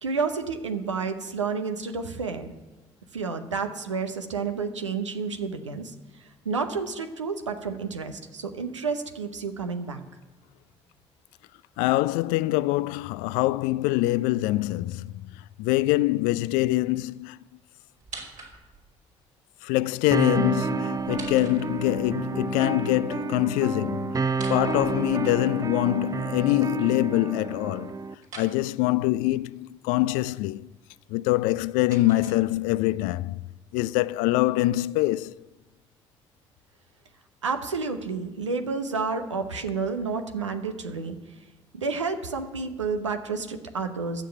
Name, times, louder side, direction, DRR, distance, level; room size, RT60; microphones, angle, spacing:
voice 1, 0.0-2.5 3.1-10.0 37.4-41.2 41.7-44.2, right 4 dB, 85° right, 0.8 m, -30 dB
voice 2, 11.8-15.1 15.6-17.4 19.6-28.0 28.4-30.7 31.1-33.4 33.7-35.4, left 17 dB, 65° left, 0.4 m, -24 dB
sound 1, 18.0-18.9 20.9-22.1 24.3-25.6 28.2-28.6 31.3-32.9, right 4 dB, 60° right, 3.3 m, -44 dB
sound 2, 20.1-28.1, right 4 dB, 25° right, 0.5 m, -30 dB
12.5 x 7.3 x 7.7 m
figure-of-eight pair, 45°, 15 cm